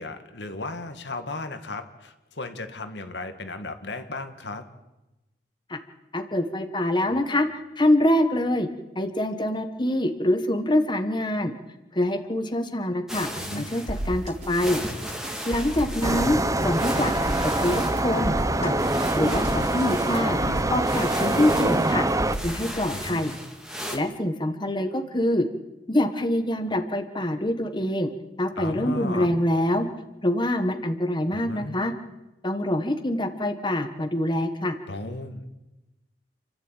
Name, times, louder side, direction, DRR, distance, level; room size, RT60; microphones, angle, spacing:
voice 1, 0.0-4.6 13.4-13.7 20.4-20.6 22.9-23.4 28.6-29.3 31.3-31.8 34.9-35.5, left 2 dB, 75° left, 7 dB, 2.0 m, -35 dB
voice 2, 6.1-7.5 7.8-8.7 8.9-11.5 11.9-13.3 13.5-14.8 15.4-17.1 17.4-18.3 18.6-18.7 19.2-20.4 20.7-22.0 22.4-23.3 23.9-25.5 25.9-28.1 28.4-29.9 30.2-31.9 32.4-34.7, left 1 dB, 25° left, 6 dB, 1.5 m, -25 dB
sound 1, 13.1-24.0, equal, 5° right, 2.6 m, -37 dB
sound 2, 13.9-22.6, right 1 dB, 40° right, 3.9 m, -34 dB
sound 3, 16.0-22.4, right 1 dB, 20° right, 0.9 m, -24 dB
29.0 x 12.0 x 9.1 m, 1.0 s
head